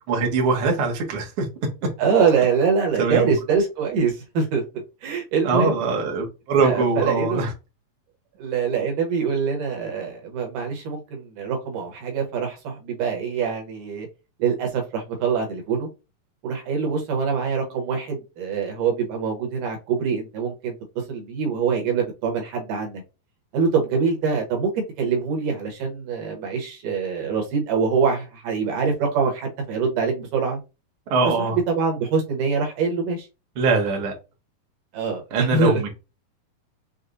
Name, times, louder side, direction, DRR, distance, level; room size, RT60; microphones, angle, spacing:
voice 1, 0.1-1.5 3.0-3.3 5.4-7.5 31.1-31.6 33.6-34.1 35.3-35.9, right 4 dB, 85° right, 1.2 m, -22 dB
voice 2, 2.0-4.6 5.0-5.8 6.6-7.4 8.4-14.1 14.4-15.9 16.4-20.7 21.1-23.0 23.5-24.7 25.0-30.6 31.4-33.3 34.9-35.8, right 5 dB, 70° right, 2.4 m, -24 dB
6.6 x 2.2 x 2.5 m
omnidirectional pair, 4.2 m